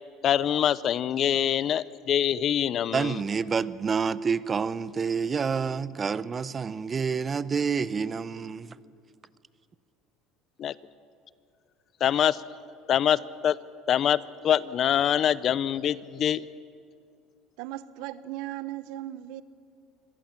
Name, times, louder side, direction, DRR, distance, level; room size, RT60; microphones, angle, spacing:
voice 1, 0.2-3.2 10.6-10.7 12.0-12.4 12.9-13.6 13.9-16.4, left 10 dB, 45° left, 0.6 m, -24 dB
voice 2, 2.9-8.8, right 5 dB, 25° right, 0.7 m, -28 dB
voice 3, 17.6-19.4, right 14 dB, 75° right, 0.9 m, -37 dB
24.5 x 18.0 x 7.4 m
supercardioid pair, 115°, 0 cm